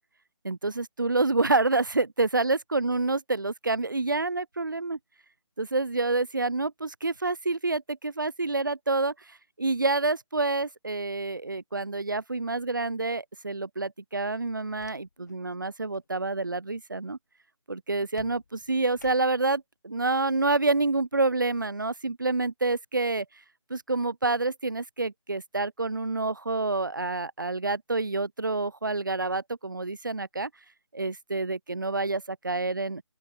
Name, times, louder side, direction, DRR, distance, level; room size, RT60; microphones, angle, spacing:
voice 1, 0.4-5.0 5.6-17.2 17.7-23.3 23.7-30.5 30.9-33.0, right 3 dB, 40° right, 0.4 m, -28 dB
sound 1, 14.4-15.4 15.7-16.1 18.2-19.6, left 4 dB, 35° left, 1.5 m, -53 dB
open air
figure-of-eight pair, 175°, 17 cm